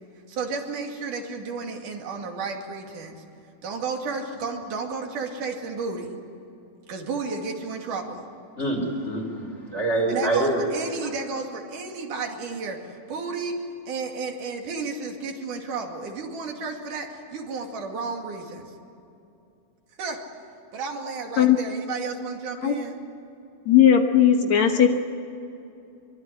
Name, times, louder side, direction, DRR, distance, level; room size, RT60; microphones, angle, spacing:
voice 1, 0.3-3.2 3.6-6.1 6.9-8.2 10.1-12.8 13.1-18.7 20.0-20.2 20.7-23.0, right 4 dB, 80° right, 2 dB, 3.9 m, -32 dB
voice 2, 8.6-10.7 11.0-11.1, right 2 dB, 20° left, 2 dB, 5.0 m, -25 dB
voice 3, 23.7-24.9, left 9 dB, 65° left, 5 dB, 2.5 m, -17 dB
25.0 x 24.0 x 9.8 m, 2.8 s
omnidirectional pair, 3.6 m